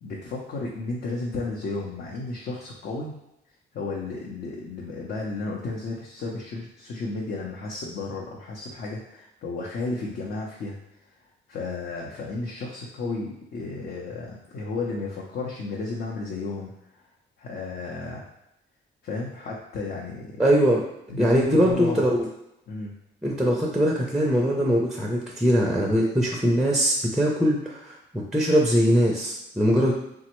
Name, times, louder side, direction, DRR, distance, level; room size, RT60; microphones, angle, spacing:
voice 1, 0.0-3.2 3.7-10.8 11.5-16.8 17.4-18.2 19.0-20.4 21.1-22.1 22.7-22.9, left 3 dB, 60° left, -3 dB, 0.6 m, -33 dB
voice 2, 20.4-20.8 21.2-22.3 23.2-29.9, equal, ahead, -1 dB, 0.4 m, -22 dB
3.4 x 2.0 x 2.9 m, 0.85 s
cardioid pair, 90°, 20 cm